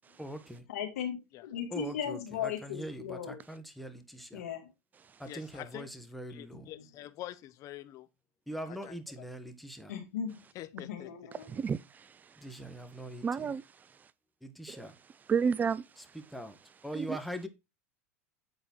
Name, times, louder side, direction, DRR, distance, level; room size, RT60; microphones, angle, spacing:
voice 1, 0.2-0.6 5.0-5.3 11.4-14.1 14.7-17.2, right 6 dB, 20° right, 0.5 m, -35 dB
voice 2, 0.7-3.4 4.3-4.7 6.6-6.9 9.9-10.4 10.7-11.5, left 8 dB, 80° left, 2.0 m, -37 dB
voice 3, 1.7-3.2 3.5-4.0 5.3-6.6 8.5-9.5 12.4-13.2 14.6-14.9 16.3-16.5 16.8-17.5, equal, ahead, 1.2 m, -41 dB
voice 4, 5.3-5.9 6.3-8.1 8.5-9.3 10.5-11.1, left 14 dB, 45° left, 0.7 m, -46 dB
7.9 x 4.1 x 4.4 m
hypercardioid pair, 105°, 8 cm